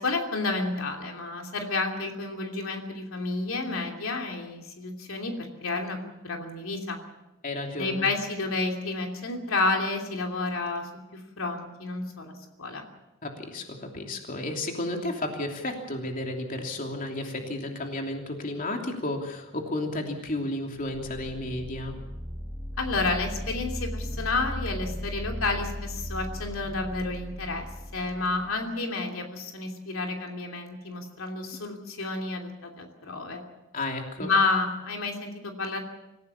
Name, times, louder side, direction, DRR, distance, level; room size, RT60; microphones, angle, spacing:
voice 1, 0.0-7.0 7.8-12.8 22.8-27.7 27.9-33.4 34.2-35.8, left 3 dB, 80° left, 3 dB, 3.0 m, -30 dB
voice 2, 7.4-8.1 13.2-22.0 33.7-34.3, left 1 dB, 40° left, 2 dB, 3.0 m, -32 dB
sound 1, 20.9-28.5, equal, 20° right, 6.0 m, -37 dB
26.0 x 16.0 x 7.2 m, 0.94 s
head